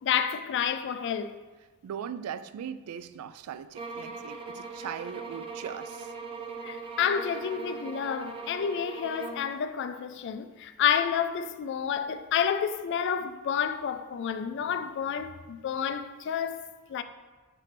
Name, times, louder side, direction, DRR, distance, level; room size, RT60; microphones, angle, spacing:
voice 1, 0.0-1.4 6.6-17.0, left 8 dB, 55° left, 0.3 m, -30 dB
voice 2, 1.8-6.1, right 8 dB, 90° right, 0.3 m, -39 dB
sound 1, 3.7-9.5, right 4 dB, 25° right, 0.5 m, -40 dB
6.1 x 5.7 x 3.3 m
head